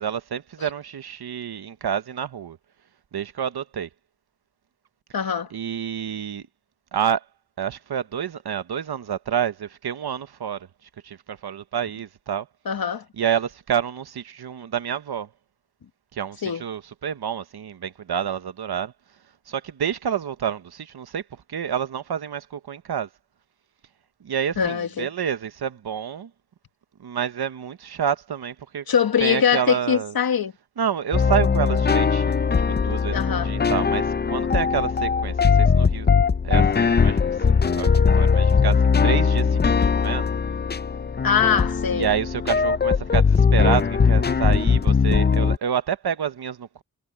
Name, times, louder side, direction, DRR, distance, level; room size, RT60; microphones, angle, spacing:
voice 1, 0.0-2.6 3.1-3.9 5.5-6.5 6.9-7.2 7.6-10.7 11.0-12.5 13.2-15.3 16.1-18.9 19.5-21.2 21.5-23.1 24.2-26.3 27.0-28.8 29.2-30.1 30.8-32.4 32.8-36.1 36.4-40.3 41.9-46.8, right 8 dB, 80° right, 1.0 m, -28 dB
voice 2, 5.1-5.5 12.6-13.0 16.4-16.6 24.6-25.1 28.9-30.5 33.1-33.5 41.2-42.1, left 7 dB, 65° left, 1.4 m, -22 dB
sound 1, 31.1-45.6, left 5 dB, 25° left, 0.5 m, -20 dB
wide cardioid pair, 120°, 38 cm